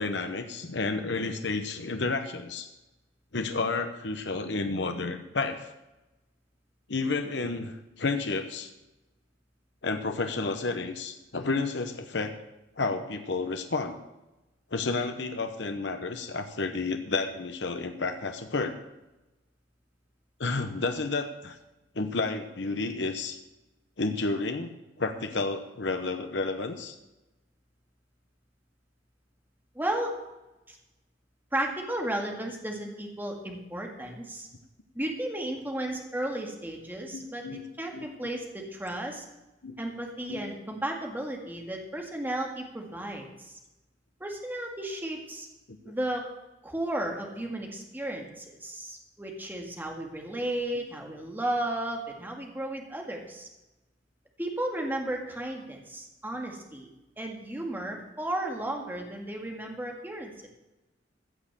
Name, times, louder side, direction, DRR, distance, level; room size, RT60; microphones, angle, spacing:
voice 1, 0.0-2.7 3.3-5.7 6.9-8.7 9.8-12.4 12.8-14.0 14.7-18.8 20.4-21.6 21.9-23.4 24.0-27.0 37.1-37.6 37.9-38.1 39.6-39.8 40.3-40.4 45.8-45.9, left 3 dB, 65° left, 6 dB, 1.0 m, -31 dB
voice 2, 29.8-30.2 30.7-30.8 31.5-34.5 35.0-37.4 37.8-39.2 39.8-43.5 44.2-45.5 45.9-46.3 46.6-53.5 54.4-56.9 57.2-60.3, right 1 dB, 10° right, 1 dB, 2.0 m, -34 dB
15.0 x 6.7 x 7.5 m, 1.0 s
head